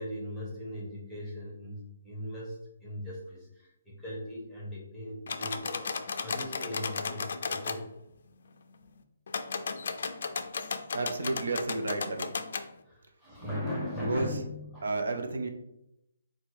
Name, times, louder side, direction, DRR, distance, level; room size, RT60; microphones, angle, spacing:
voice 1, 0.0-7.9 12.8-14.9, left 1 dB, ahead, -6 dB, 0.9 m, -39 dB
sound 1, 5.3-7.8 9.3-12.7, left 5 dB, 55° left, 0.4 m, -35 dB
voice 2, 10.9-12.4 14.0-14.3 14.8-15.5, right 3 dB, 80° right, 4 dB, 0.6 m, -31 dB
4.7 x 2.2 x 4.3 m, 0.83 s
hypercardioid pair, 175°, 0 cm